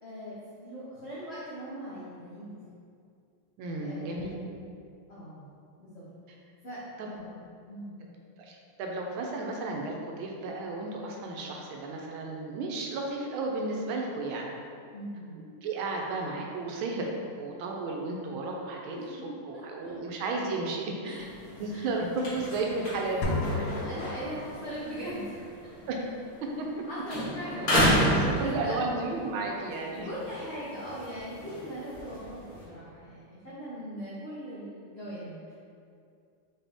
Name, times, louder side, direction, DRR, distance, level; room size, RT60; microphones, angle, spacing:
voice 1, 0.0-2.6 3.8-4.3 5.1-5.5 5.8-6.0 6.6-7.4 7.7-8.0 14.9-15.4 18.9-19.9 21.0-21.3 21.7-21.9 23.7-25.5 26.9-28.8 30.0-35.5, equal, 65° left, -10 dB, 0.6 m, -40 dB
voice 2, 3.6-4.4 7.0-7.1 8.4-14.5 15.4-17.1 17.4-23.8 25.9-26.0 26.4-26.7 28.1-30.1, right 3 dB, 80° right, 0 dB, 1.4 m, -33 dB
sound 1, 21.1-26.8 27.1-29.1 29.6-32.6, equal, 40° left, 1.5 m, -31 dB
sound 2, 23.2-24.9, left 2 dB, 85° left, 1.6 m, -32 dB
4.1 x 3.6 x 3.4 m, 2.4 s
omnidirectional pair, 2.3 m